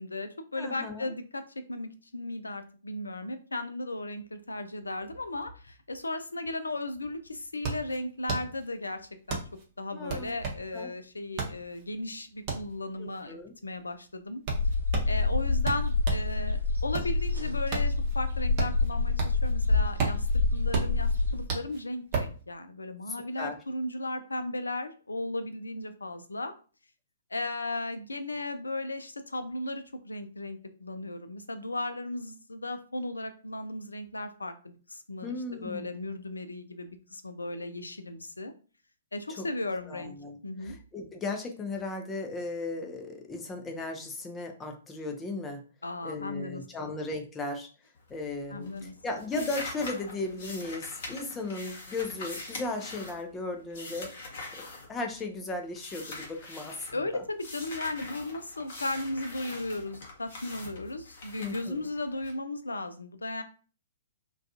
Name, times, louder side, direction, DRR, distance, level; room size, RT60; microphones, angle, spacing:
voice 1, 0.0-1.4 1.7-9.4 9.8-14.4 15.1-26.5 27.3-38.5 39.1-40.1 40.4-40.8 45.8-47.0 48.5-49.2 56.9-63.4, left 2 dB, 80° left, 9 dB, 0.4 m, -36 dB
voice 2, 0.6-1.1 9.9-10.4 10.7-10.9 13.0-13.5 23.1-23.6 35.2-35.9 39.4-39.5 39.9-40.4 40.6-45.6 46.0-47.7 48.1-54.1 54.5-57.2 61.4-61.8, left 2 dB, 15° left, 3 dB, 0.5 m, -36 dB
sound 1, 6.7-6.8 7.0-16.3 16.7-19.5 19.8-22.4, right 5 dB, 35° right, 0.7 m, -34 dB
sound 2, 14.5-21.5, left 3 dB, 90° right, 0.8 m, -27 dB
sound 3, 47.9-48.4 48.6-55.4 55.8-56.9 57.4-62.3, left 2 dB, 50° left, 0.9 m, -43 dB
2.3 x 2.2 x 2.6 m, 0.38 s
figure-of-eight pair, 120°, 0 cm